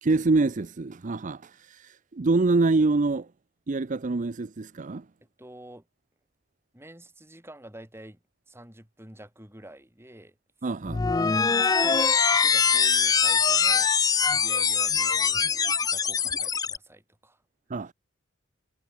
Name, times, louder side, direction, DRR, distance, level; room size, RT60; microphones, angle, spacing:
voice 1, 0.0-3.3 3.7-5.1 10.6-11.1 17.7-17.9, right 3 dB, 35° right, 0.6 m, -25 dB
voice 2, 5.4-5.9 6.7-10.4 11.3-13.9 14.3-17.4, right 1 dB, 10° right, 6.9 m, -48 dB
sound 1, 10.9-16.8, left 6 dB, 15° left, 0.3 m, -23 dB
head